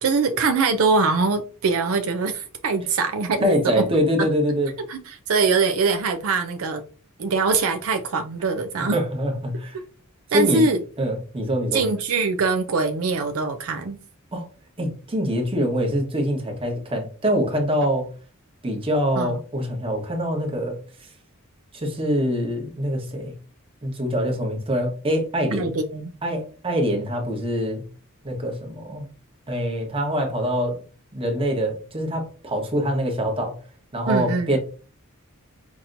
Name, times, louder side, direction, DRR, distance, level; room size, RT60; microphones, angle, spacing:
voice 1, 0.0-3.6 4.9-6.8 7.2-9.0 10.3-10.8 11.7-14.0 19.2-19.4 25.5-26.1 34.1-34.6, right 4 dB, 70° right, 0.5 m, -23 dB
voice 2, 3.4-4.7 8.8-9.8 10.3-10.7 11.0-11.9 14.3-14.5 14.8-18.1 18.6-21.1 21.7-23.3 23.8-25.7 26.2-27.8 28.2-29.1 29.5-30.8 31.1-33.6 33.9-34.6, equal, 25° right, 1.1 m, -24 dB
5.9 x 2.8 x 2.6 m
head